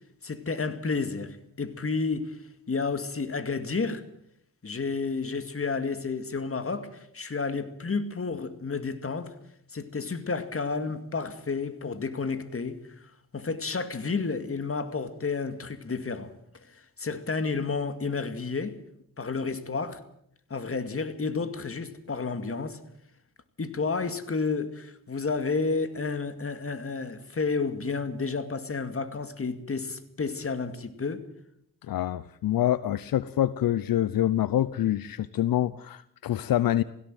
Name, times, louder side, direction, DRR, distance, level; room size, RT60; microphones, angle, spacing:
voice 1, 0.2-2.4 2.7-4.0 4.6-9.3 9.7-12.8 13.3-16.3 16.7-18.8 19.2-20.0 20.5-22.8 23.6-31.3, left 4 dB, 40° left, 2.3 m, -31 dB
voice 2, 31.9-36.8, left 12 dB, 80° left, 0.7 m, -26 dB
17.5 x 17.0 x 9.0 m
cardioid pair, 60°, 34 cm